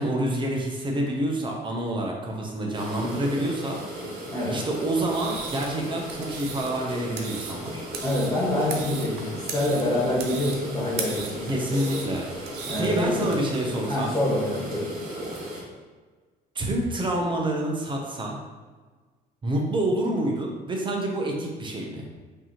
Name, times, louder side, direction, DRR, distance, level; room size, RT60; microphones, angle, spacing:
voice 1, 0.0-3.8 4.5-7.8 11.5-12.3 12.8-14.1 16.5-18.4 19.4-22.1, right 1 dB, 30° right, 0 dB, 0.7 m, -27 dB
sound 1, 2.7-15.6, equal, 60° right, 1.4 m, -37 dB
sound 2, 5.0-13.4, right 5 dB, 80° right, 0.6 m, -38 dB
voice 2, 8.0-12.0 12.7-13.3 13.9-14.9, left 1 dB, 20° left, -7 dB, 1.5 m, -26 dB
5.3 x 2.8 x 3.0 m, 1.4 s
cardioid pair, 110°, 17 cm